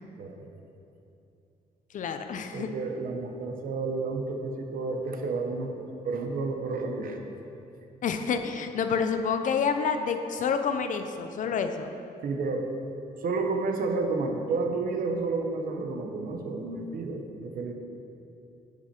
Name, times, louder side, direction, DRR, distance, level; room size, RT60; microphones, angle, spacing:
voice 1, 0.2-0.5 2.5-7.2 12.2-12.7 13.2-17.7, right 3 dB, 60° right, 3 dB, 0.9 m, -31 dB
voice 2, 1.9-2.7 8.0-11.9, left 6 dB, 55° left, 7 dB, 0.5 m, -28 dB
9.7 x 6.0 x 4.3 m, 2.7 s
cardioid pair, 150°, 16 cm